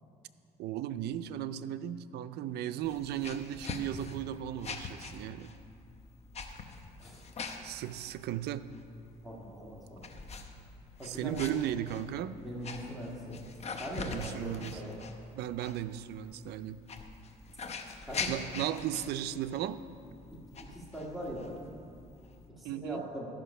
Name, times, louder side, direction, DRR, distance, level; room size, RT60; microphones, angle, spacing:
voice 1, 0.6-5.5 7.6-8.7 11.0-12.4 14.0-14.8 15.3-16.8 18.3-19.8 22.6-23.0, right 11 dB, 75° right, 12 dB, 0.4 m, -36 dB
sound 1, 2.8-22.5, left 4 dB, 40° left, 0.8 m, -44 dB
voice 2, 9.2-10.2 11.0-11.3 12.4-13.4 13.8-15.0 18.0-18.4 20.6-21.5 22.6-23.3, equal, ahead, -5 dB, 1.8 m, -41 dB
13.5 x 5.9 x 5.5 m, 2.5 s
cardioid pair, 110°, 17 cm